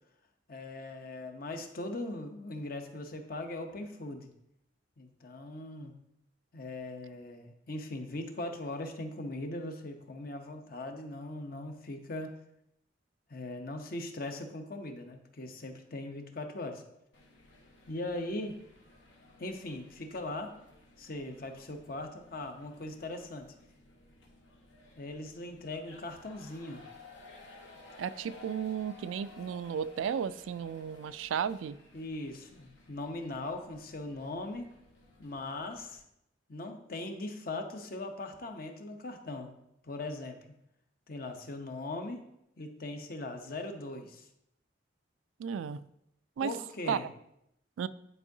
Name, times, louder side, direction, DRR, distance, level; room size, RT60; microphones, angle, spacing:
voice 1, 0.5-4.3 5.0-5.9 6.5-12.3 13.3-16.8 17.9-18.5 19.4-20.5 21.0-23.5 25.0-26.8 31.9-34.7 35.2-36.0 36.5-39.5 39.8-40.4 41.1-42.2 42.6-44.3 46.4-47.0, left 2 dB, 50° left, 5 dB, 0.8 m, -40 dB
sound 1, 17.1-36.0, left 2 dB, 75° left, 1.2 m, -56 dB
voice 2, 28.0-31.8 45.4-45.8 46.4-46.5 46.9-47.0 47.8-47.9, right 7 dB, 90° right, 16 dB, 0.3 m, -34 dB
9.9 x 4.6 x 2.7 m, 0.79 s
head